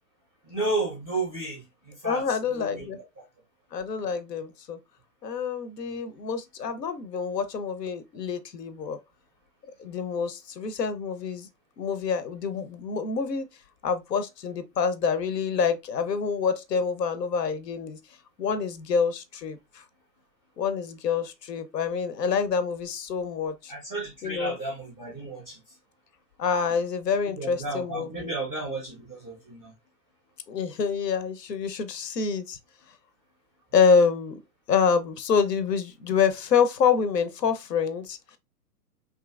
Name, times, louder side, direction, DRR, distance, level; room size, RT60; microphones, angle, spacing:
voice 1, 0.4-2.9 3.2-3.3 5.8-6.0 23.7-25.6 27.3-29.7, right 2 dB, 10° right, 0.4 m, -33 dB
voice 2, 2.0-3.0 3.7-4.8 5.2-9.0 9.8-11.5 11.8-13.5 13.8-18.0 18.4-19.8 20.6-23.7 24.2-24.6 26.4-28.3 30.5-32.6 33.7-34.4 34.7-38.4, left 6 dB, 85° left, 0.6 m, -27 dB
2.7 x 2.4 x 2.3 m
hypercardioid pair, 120°, 48 cm